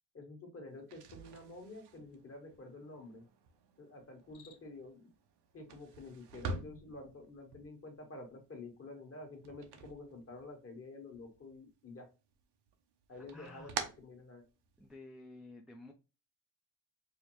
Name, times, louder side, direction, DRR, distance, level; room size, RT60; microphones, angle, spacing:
voice 1, 0.1-3.2 3.8-5.1 5.5-12.1 13.1-13.7 14.0-14.4, left 2 dB, 35° left, 1.3 m, -49 dB
sound 1, 0.8-10.8 11.1-12.0 12.3-15.0, right 4 dB, 75° right, 0.7 m, -47 dB
Cricket, 4.1-4.9, left 7 dB, 70° left, 0.7 m, -62 dB
voice 2, 13.1-13.7 14.8-15.9, left 2 dB, ahead, 0.4 m, -52 dB
4.9 x 2.0 x 3.0 m
cardioid pair, 90°, 40 cm